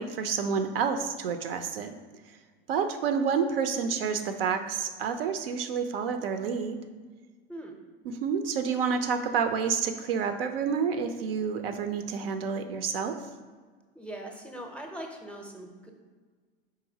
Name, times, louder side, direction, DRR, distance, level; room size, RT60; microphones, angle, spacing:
voice 1, 0.0-2.0 2.7-6.8 8.0-13.2, right 6 dB, 80° right, 8 dB, 0.5 m, -29 dB
voice 2, 13.9-15.9, right 1 dB, 5° left, 2 dB, 0.5 m, -41 dB
4.8 x 3.8 x 2.7 m, 1.5 s
hypercardioid pair, 85°, 29 cm